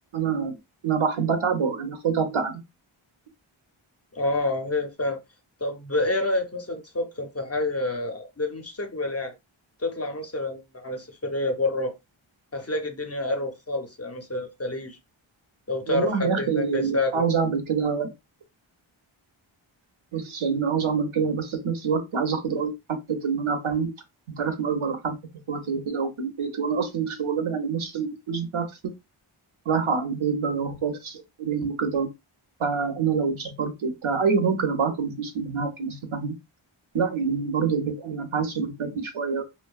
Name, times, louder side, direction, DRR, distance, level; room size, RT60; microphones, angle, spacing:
voice 1, 0.1-0.6 0.8-2.6 15.9-18.1 20.1-23.9 24.4-25.2 25.5-28.7 29.7-32.1 32.6-36.3 36.9-39.4, right 6 dB, 75° right, 0.8 m, -26 dB
voice 2, 4.1-5.2 5.6-9.3 9.8-11.9 12.5-15.0 15.7-17.2, left 2 dB, 30° left, 0.5 m, -28 dB
2.6 x 2.2 x 2.3 m
wide cardioid pair, 75°, 50 cm